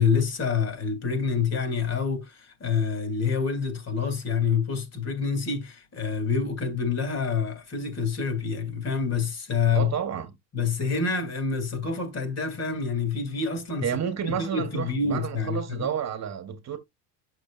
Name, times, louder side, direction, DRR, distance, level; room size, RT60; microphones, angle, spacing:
voice 1, 0.0-9.9 10.5-13.9 14.2-15.9, left 5 dB, 40° left, 2.8 m, -27 dB
voice 2, 9.7-10.3 13.8-16.8, right 8 dB, 40° right, 1.5 m, -30 dB
8.1 x 6.5 x 2.5 m
cardioid pair, 120°, 40 cm